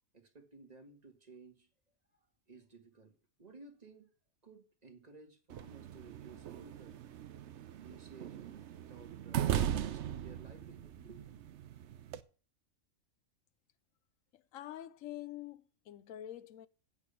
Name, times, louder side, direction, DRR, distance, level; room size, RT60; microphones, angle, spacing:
voice 1, 0.1-1.7 2.5-3.1 3.4-4.1 4.4-7.1 7.8-11.4, right 4 dB, 30° right, 1.8 m, -56 dB
sound 1, 5.5-12.2, right 10 dB, 65° right, 0.9 m, -39 dB
voice 2, 14.3-16.7, left 12 dB, 80° left, 1.1 m, -46 dB
8.4 x 7.2 x 6.8 m
omnidirectional pair, 1.4 m